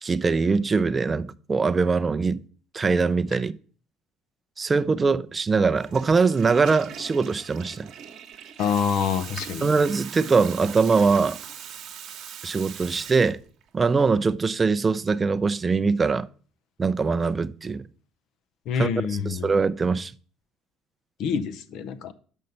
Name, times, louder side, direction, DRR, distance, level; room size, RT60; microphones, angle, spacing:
voice 1, 0.0-2.4 2.7-3.5 4.6-7.9 9.6-11.4 12.4-13.4 13.7-16.3 16.8-17.8 18.8-18.9 19.3-20.1, right 4 dB, 30° right, 0.5 m, -22 dB
Water tap faucet / Toilet flush, 5.6-13.7, right 8 dB, 60° right, 1.1 m, -40 dB
voice 2, 8.6-9.7 18.7-19.5 21.2-22.1, left 6 dB, 65° left, 0.7 m, -26 dB
6.4 x 5.5 x 5.4 m
hypercardioid pair, 65°, 0 cm